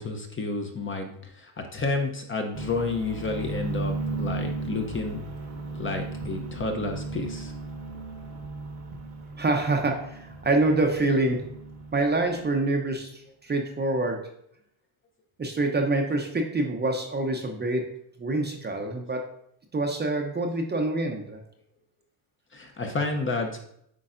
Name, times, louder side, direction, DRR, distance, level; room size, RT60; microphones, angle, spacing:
voice 1, 0.0-5.2 5.7-7.5 22.5-23.6, left 3 dB, 25° left, 3 dB, 0.7 m, -30 dB
sound 1, 2.5-12.8, right 3 dB, 85° right, 1.5 m, -36 dB
voice 2, 9.4-11.4 11.9-14.2 15.4-17.8 18.2-19.2 19.7-21.4, right 2 dB, 20° right, 2 dB, 0.6 m, -26 dB
8.5 x 4.6 x 2.5 m, 0.72 s
cardioid pair, 135°, 49 cm